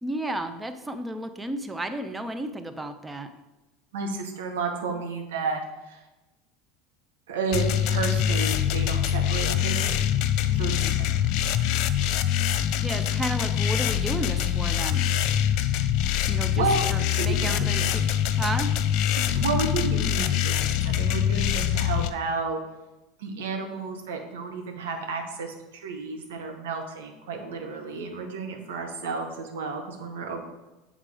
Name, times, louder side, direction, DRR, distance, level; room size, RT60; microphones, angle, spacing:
voice 1, 0.0-3.3 10.5-10.9 12.8-15.1 16.3-18.0 18.4-18.7, right 1 dB, 15° right, 8 dB, 0.7 m, -33 dB
voice 2, 3.9-5.6 5.9-6.0 7.3-9.9 10.6-10.7 16.5-16.9 17.2-17.5 17.8-17.9 19.1-22.6 23.2-30.4, right 4 dB, 75° right, 3 dB, 1.1 m, -31 dB
sound 1, 7.5-22.1, left 10 dB, 60° left, 0.4 m, -24 dB
7.5 x 3.7 x 4.9 m, 1.1 s
hypercardioid pair, 80°, 0 cm